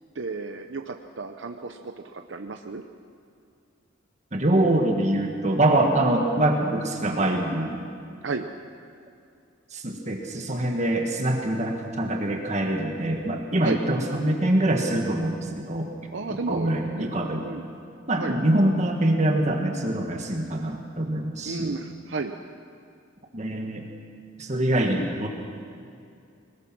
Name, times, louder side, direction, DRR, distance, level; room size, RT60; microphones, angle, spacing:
voice 1, 0.1-2.8 8.2-8.5 13.6-13.8 16.1-17.1 17.4-17.6 18.2-18.4 21.4-22.3, right 4 dB, 70° right, 5 dB, 0.8 m, -33 dB
voice 2, 4.3-7.8 9.7-15.9 16.5-17.5 18.1-21.8 23.3-23.9 24.4-25.3, right 1 dB, 35° right, 2 dB, 1.6 m, -24 dB
22.0 x 20.5 x 6.1 m, 2.5 s
head